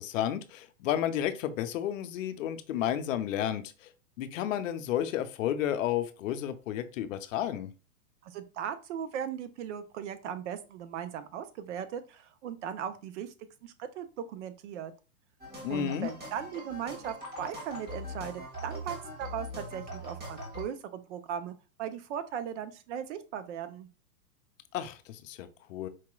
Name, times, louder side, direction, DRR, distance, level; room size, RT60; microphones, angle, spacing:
voice 1, 0.0-3.9 4.2-7.7 15.6-16.1 24.7-25.9, left 10 dB, 60° left, 10 dB, 0.7 m, -32 dB
voice 2, 8.2-13.3 13.6-14.9 15.7-23.9, right 9 dB, 50° right, 11 dB, 0.7 m, -38 dB
sound 1, 15.4-20.6, equal, 20° right, 1.6 m, -42 dB
4.7 x 2.9 x 2.3 m, 0.33 s
hypercardioid pair, 130°, 44 cm